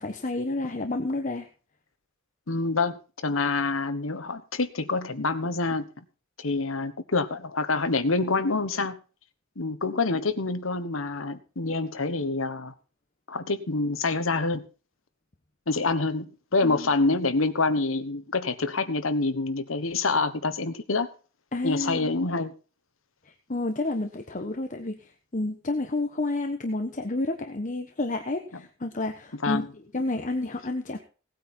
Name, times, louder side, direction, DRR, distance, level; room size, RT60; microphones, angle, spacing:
voice 1, 0.0-1.5 16.6-16.9 21.5-22.2 23.2-31.0, left 2 dB, 40° left, 5 dB, 1.2 m, -30 dB
voice 2, 2.5-5.9 6.4-9.0 9.6-12.7 13.3-14.6 15.7-21.1 21.6-22.5 29.4-29.7, left 3 dB, 80° left, 11 dB, 1.4 m, -26 dB
18.0 x 9.2 x 4.5 m, 0.36 s
head